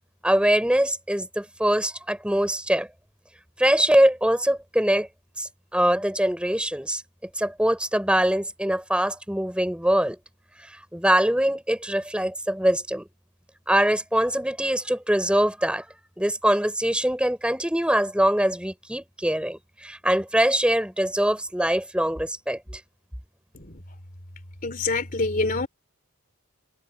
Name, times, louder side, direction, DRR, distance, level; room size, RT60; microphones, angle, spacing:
voice 1, 0.2-2.9 3.6-5.1 5.4-7.0 7.4-10.2 10.9-13.1 13.7-15.8 16.2-22.8, right 1 dB, 5° right, 5.1 m, -23 dB
voice 2, 24.6-25.7, left 3 dB, 40° left, 3.4 m, -26 dB
head